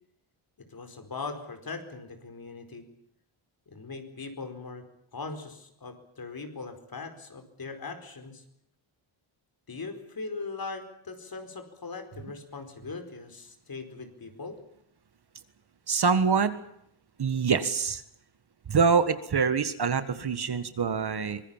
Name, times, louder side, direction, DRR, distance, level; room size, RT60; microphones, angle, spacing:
voice 1, 0.7-2.8 3.7-4.8 5.1-8.4 9.7-14.6, left 4 dB, 45° left, 7 dB, 4.8 m, -40 dB
voice 2, 15.9-16.5 17.2-18.0 18.7-21.4, right 5 dB, 50° right, 12 dB, 1.7 m, -25 dB
24.5 x 21.5 x 7.4 m, 0.74 s
wide cardioid pair, 135°, 50 cm